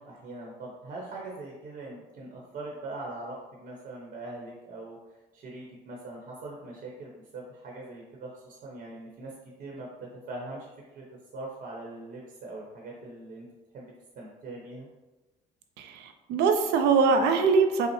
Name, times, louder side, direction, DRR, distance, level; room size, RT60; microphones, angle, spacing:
voice 1, 0.0-9.3 9.6-9.9 10.3-10.7 10.9-11.0 11.3-13.5 13.7-14.9, right 2 dB, 60° right, -2 dB, 0.9 m, -41 dB
voice 2, 15.8-17.9, right 5 dB, 85° right, 6 dB, 0.5 m, -23 dB
5.4 x 2.0 x 3.1 m, 1.1 s
cardioid pair, 110°, 17 cm